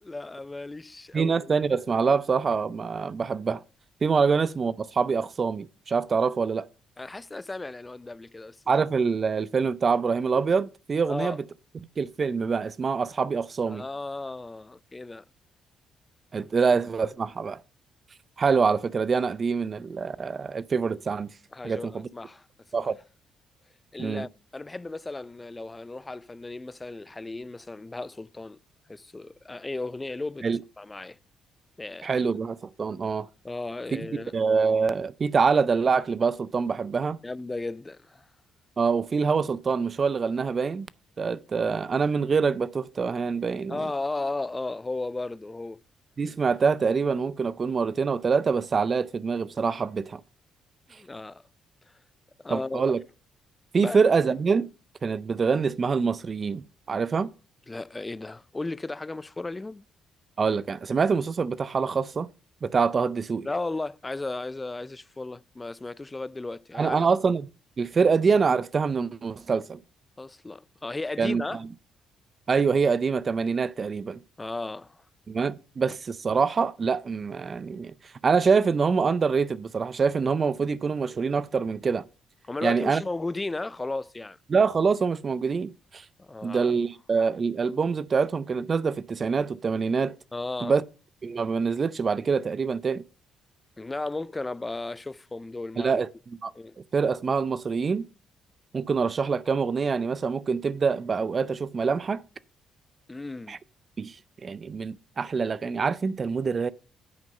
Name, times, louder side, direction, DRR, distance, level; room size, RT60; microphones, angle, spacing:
voice 1, 0.0-1.5 7.0-8.6 11.1-11.4 13.7-15.3 16.6-16.7 21.5-22.5 22.8-22.9 23.9-28.6 28.9-30.5 30.8-31.2 31.8-32.3 33.4-34.3 37.2-38.2 43.7-45.8 50.9-51.4 52.4-52.8 53.7-54.0 57.7-59.8 63.4-67.0 70.2-71.6 74.4-75.0 82.5-84.4 86.2-86.7 90.3-90.7 93.8-96.0 96.5-96.8 103.1-103.6, left 2 dB, 20° left, 0.4 m, -35 dB
voice 2, 1.1-3.6 4.0-6.7 8.7-11.4 12.0-13.8 16.3-17.6 18.4-21.3 21.6-22.1 22.7-22.9 24.0-24.3 30.4-30.6 32.0-33.3 33.9-37.2 38.8-40.9 41.2-43.8 46.2-50.2 52.5-53.0 53.7-54.7 55.0-56.6 56.9-57.3 60.4-62.3 62.6-63.5 66.8-67.5 67.8-69.8 71.2-71.7 72.5-74.2 75.3-77.9 78.2-82.0 82.6-83.0 84.5-86.0 86.4-90.1 90.6-90.8 91.2-93.0 95.8-96.1 96.4-96.5 96.9-98.0 98.7-102.2 103.5-103.6 104.0-104.2 104.4-106.7, right 5 dB, 40° right, 0.5 m, -25 dB
8.9 x 6.4 x 5.3 m
supercardioid pair, 70°, 0 cm